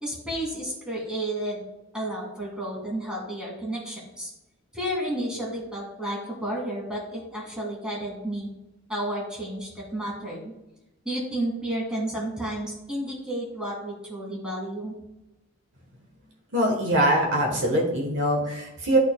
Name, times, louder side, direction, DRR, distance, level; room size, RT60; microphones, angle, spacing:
voice 1, 0.0-1.6 1.9-4.3 4.7-8.5 8.9-10.5 11.1-15.0, right 1 dB, 5° right, -4 dB, 2.0 m, -31 dB
voice 2, 16.5-19.0, right 1 dB, 55° right, 0 dB, 1.2 m, -23 dB
12.0 x 4.2 x 2.3 m, 0.96 s
head